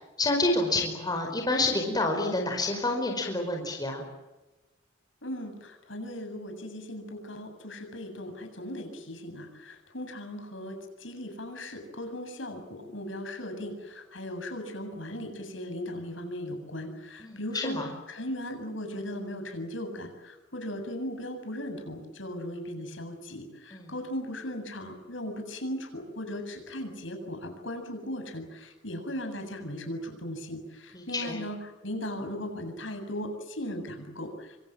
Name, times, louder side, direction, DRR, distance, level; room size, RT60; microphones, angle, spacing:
voice 1, 0.2-4.0 17.2-17.9 23.7-23.9 30.9-31.4, left 2 dB, 20° left, 2 dB, 5.0 m, -28 dB
voice 2, 5.2-17.8 18.1-34.6, left 1 dB, 80° left, 6 dB, 7.6 m, -37 dB
28.0 x 24.5 x 7.7 m, 1.1 s
head